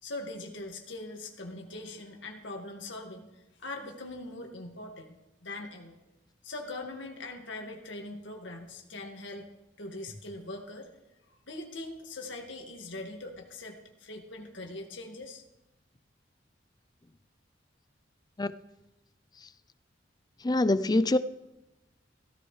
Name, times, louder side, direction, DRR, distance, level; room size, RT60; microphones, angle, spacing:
voice 1, 0.0-5.2 5.4-6.0 6.4-9.5 9.8-10.9 11.3-15.4, left 2 dB, 80° left, 2 dB, 1.9 m, -41 dB
voice 2, 20.4-21.2, left 2 dB, 20° left, 14 dB, 0.5 m, -24 dB
16.0 x 13.5 x 3.3 m, 0.96 s
head